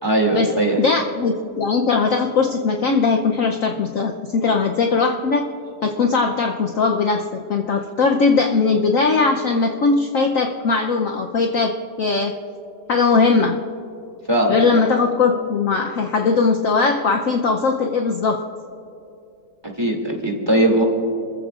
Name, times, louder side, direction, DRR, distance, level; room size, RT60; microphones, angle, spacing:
voice 1, 0.0-0.8 14.3-14.6 19.8-20.8, right 1 dB, 15° right, 0 dB, 2.3 m, -19 dB
voice 2, 0.8-5.5 5.8-12.4 12.9-13.6 14.5-18.4, left 4 dB, 60° left, 2 dB, 1.0 m, -19 dB
28.0 x 15.0 x 2.4 m, 2.7 s
omnidirectional pair, 1.9 m